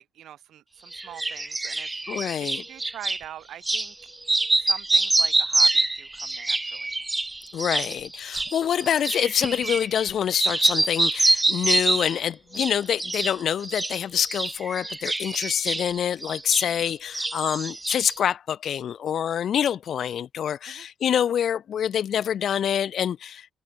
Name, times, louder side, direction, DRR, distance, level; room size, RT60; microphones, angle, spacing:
voice 1, 0.0-4.1 4.5-6.9 16.6-16.8 20.7-20.9, right 11 dB, 75° right, 6.8 m, -44 dB
sound 1, 0.9-3.2 3.6-3.9 4.2-10.1 10.4-12.2 12.5-13.3 13.6-16.9 17.1-18.2, right 2 dB, 15° right, 3.8 m, -25 dB
voice 2, 2.1-2.6 7.5-23.5, left 9 dB, 60° left, 1.9 m, -26 dB
cardioid pair, 90°, 0 cm